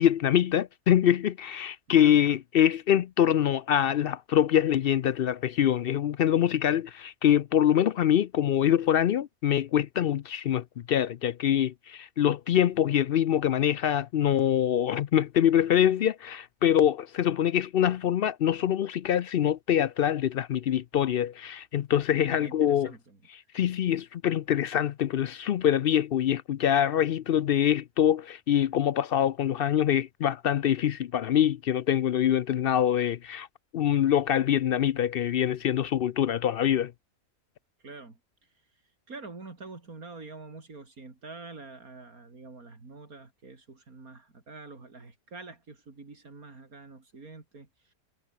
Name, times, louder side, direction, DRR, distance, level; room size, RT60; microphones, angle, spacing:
voice 1, 0.0-22.9 23.5-33.5 33.7-36.9, left 10 dB, 65° left, 0.5 m, -24 dB
voice 2, 1.9-2.2 22.2-23.2 37.8-38.2 39.1-47.9, right 3 dB, 85° right, 4.0 m, -46 dB
omnidirectional pair, 1.5 m